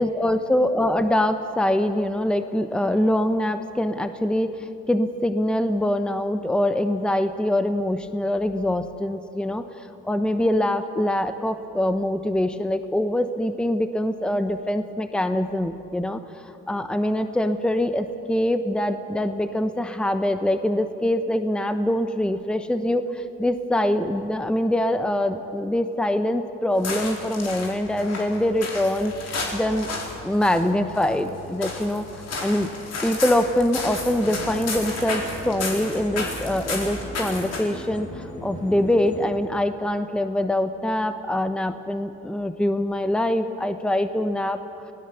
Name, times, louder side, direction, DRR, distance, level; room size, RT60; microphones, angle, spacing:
voice 1, 0.0-9.6 10.0-16.2 16.7-29.1 29.5-29.9 30.2-32.7 33.0-44.6, left 1 dB, 5° left, 9 dB, 1.0 m, -24 dB
sound 1, 26.7-37.9, left 3 dB, 55° left, 4.2 m, -33 dB
sound 2, 33.8-39.3, equal, 40° left, 7.2 m, -38 dB
23.5 x 17.5 x 6.9 m, 2.7 s
cardioid pair, 90°, 30 cm